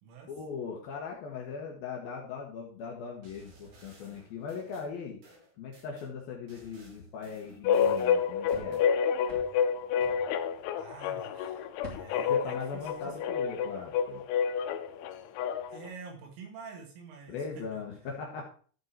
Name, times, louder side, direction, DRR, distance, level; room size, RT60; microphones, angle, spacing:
voice 1, 0.3-5.2 5.6-8.8 12.3-14.2 17.3-18.5, left 5 dB, 70° left, 0 dB, 2.4 m, -39 dB
sound 1, 3.2-6.1 6.5-8.9, right 2 dB, 50° right, 4.2 m, -57 dB
sound 2, 7.7-15.9, left 7 dB, 85° left, 3.0 m, -29 dB
sound 3, 7.7-11.1 11.4-13.4 13.7-14.0, right 2 dB, 20° right, 2.1 m, -51 dB
voice 2, 10.8-13.2 15.7-17.8, right 5 dB, 85° right, 1 dB, 4.8 m, -48 dB
13.0 x 5.3 x 4.6 m, 0.43 s
omnidirectional pair, 5.6 m